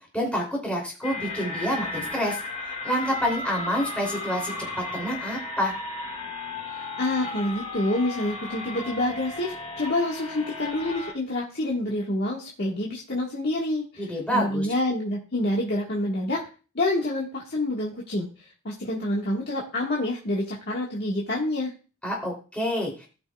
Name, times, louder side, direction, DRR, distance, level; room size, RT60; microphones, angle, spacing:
voice 1, 0.1-4.5 4.9-5.7 14.0-14.7 22.0-23.1, equal, 5° left, -2 dB, 3.0 m, -28 dB
sound 1, 1.0-11.1, left 3 dB, 30° left, 2.9 m, -35 dB
voice 2, 6.7-16.4 16.7-18.3 18.6-21.7, left 1 dB, 50° left, -3 dB, 1.6 m, -27 dB
16.5 x 6.0 x 2.3 m, 0.35 s
head